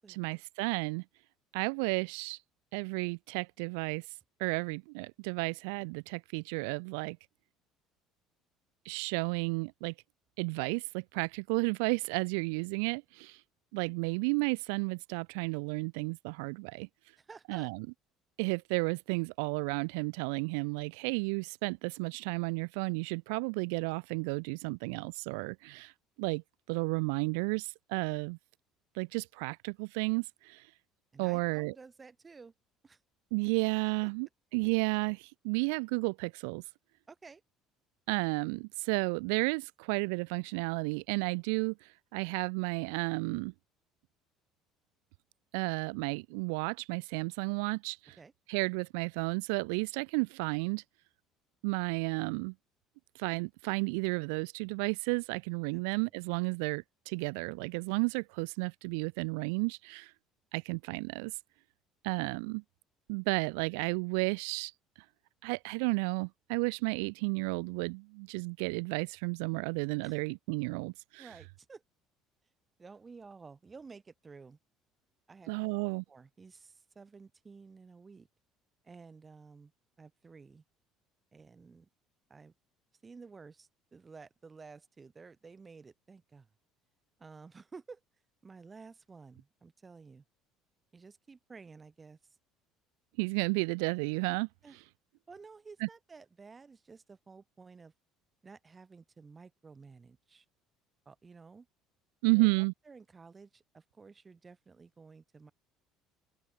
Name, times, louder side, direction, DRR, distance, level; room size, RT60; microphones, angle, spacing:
voice 1, 0.1-1.0 1.5-2.4 2.7-4.1 4.4-7.2 8.8-9.9 10.4-13.4 13.7-16.9 17.5-17.9 18.4-25.9 26.2-26.4 26.7-28.4 28.9-30.7 31.2-31.7 33.3-36.6 38.1-43.5 45.5-48.2 48.5-50.8 51.6-52.5 53.1-60.1 60.5-61.4 62.0-62.6 63.1-64.7 65.4-71.3 75.5-76.0 93.2-94.5 95.8-95.9 102.2-102.7, right 34 dB, 90° right, 0.7 m, -32 dB
voice 2, 17.2-17.7 31.1-32.5 32.8-33.0 37.1-37.4 48.2-48.3 55.7-55.8 70.0-70.2 71.2-71.8 72.8-74.6 75.3-75.7 76.1-78.3 78.8-79.7 80.0-80.6 81.3-81.9 82.3-82.5 83.0-86.5 87.2-88.0 88.4-90.2 90.9-92.2 94.6-94.8 95.3-97.9 98.4-100.4 101.1-101.7 102.3-105.5, right 4 dB, 25° right, 6.2 m, -53 dB
open air
cardioid pair, 110°, 0 cm